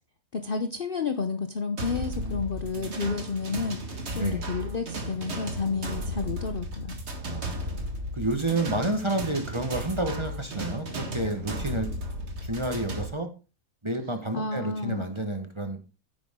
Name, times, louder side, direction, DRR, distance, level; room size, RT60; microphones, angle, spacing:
voice 1, 0.3-7.0 14.3-15.0, left 4 dB, 45° left, 8 dB, 0.7 m, -31 dB
sound 1, 1.8-13.1, equal, 45° right, 1.9 m, -35 dB
voice 2, 2.2-2.9 4.1-4.5 7.2-7.7 8.1-11.9 12.4-13.3 13.8-15.8, right 2 dB, 20° right, 6 dB, 1.2 m, -30 dB
9.9 x 8.8 x 3.7 m, 0.32 s
omnidirectional pair, 1.7 m